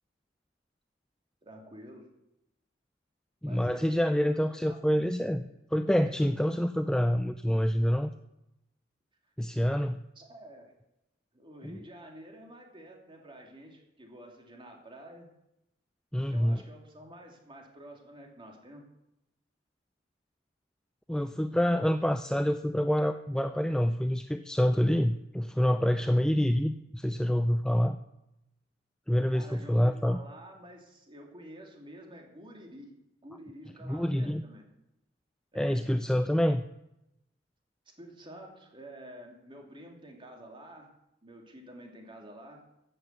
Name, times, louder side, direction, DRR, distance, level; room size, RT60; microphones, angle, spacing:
voice 1, 1.4-2.1 3.4-4.8 10.1-10.7 11.3-15.3 16.3-18.8 29.3-32.9 33.2-34.6 35.5-35.8 38.0-40.9 41.2-42.6, right 1 dB, 25° right, 1 dB, 3.0 m, -49 dB
voice 2, 3.4-5.4 5.7-8.1 9.4-10.0 11.6-11.8 16.1-16.6 21.1-28.0 29.1-30.2 33.8-34.4 35.5-36.7, equal, 5° left, 9 dB, 0.4 m, -27 dB
14.5 x 7.8 x 8.1 m, 0.87 s
head